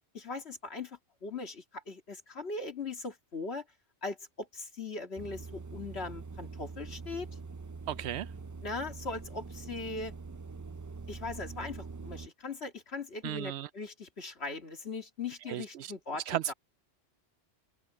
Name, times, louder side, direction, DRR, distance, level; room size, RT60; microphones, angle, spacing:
voice 1, 0.1-3.6 4.0-7.3 8.6-10.1 11.1-16.5, left 3 dB, 70° left, 2.5 m, -40 dB
sound 1, 5.2-12.3, right 4 dB, 30° right, 0.3 m, -44 dB
voice 2, 7.9-8.3 13.2-13.7 15.5-15.9 16.3-16.5, right 12 dB, 75° right, 0.8 m, -35 dB
open air
omnidirectional pair, 1.1 m